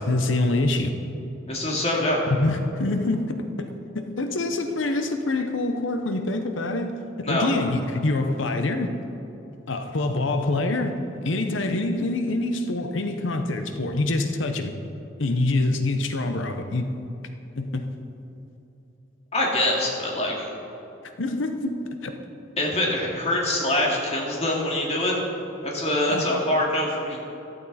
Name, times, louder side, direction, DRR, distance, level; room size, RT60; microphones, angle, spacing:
voice 1, 0.1-0.9 2.3-9.0 9.7-14.7 15.2-16.9 17.6-17.9 21.2-21.8 22.0-22.2 26.1-26.3, left 2 dB, 75° left, 7 dB, 0.9 m, -25 dB
voice 2, 1.5-2.2 7.2-7.5 19.3-20.5 22.6-25.2 25.6-27.2, left 1 dB, 35° left, -2 dB, 2.5 m, -24 dB
14.5 x 12.0 x 4.2 m, 2.9 s
head